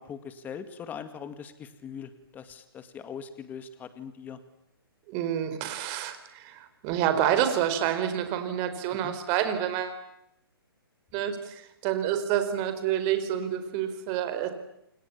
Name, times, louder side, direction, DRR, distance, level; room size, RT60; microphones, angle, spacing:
voice 1, 0.0-4.4 9.0-9.2, left 7 dB, 15° left, 11 dB, 2.1 m, -41 dB
voice 2, 5.1-10.0 11.1-14.5, right 10 dB, 30° right, 9 dB, 4.7 m, -28 dB
29.0 x 28.0 x 7.3 m, 0.80 s
hypercardioid pair, 155°, 13 cm